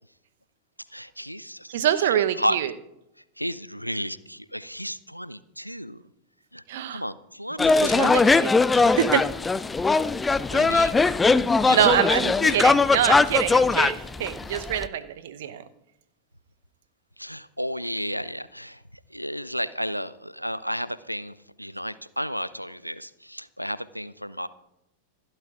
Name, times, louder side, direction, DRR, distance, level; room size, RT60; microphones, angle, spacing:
voice 1, 0.9-1.7 2.0-2.6 3.4-6.0 6.5-6.6 6.9-8.3 10.5-11.0 11.6-12.6 17.2-18.8 19.1-24.5, equal, 90° left, 17 dB, 0.5 m, -32 dB
voice 2, 1.7-2.7 6.7-7.0 7.7-9.3 11.7-15.6, right 10 dB, 55° right, 12 dB, 0.9 m, -25 dB
sound 1, 7.6-14.9, left 3 dB, 10° left, 0.4 m, -20 dB
27.5 x 12.0 x 2.5 m, 0.88 s
figure-of-eight pair, 90°, 0 cm